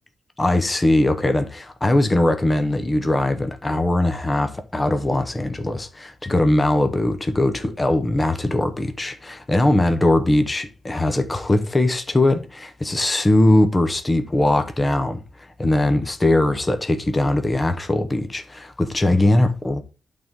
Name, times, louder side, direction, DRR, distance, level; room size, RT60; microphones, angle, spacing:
voice 1, 0.4-19.8, left 1 dB, 15° left, 0.9 m, -20 dB
12.0 x 4.1 x 3.6 m
wide cardioid pair, 165°, 0 cm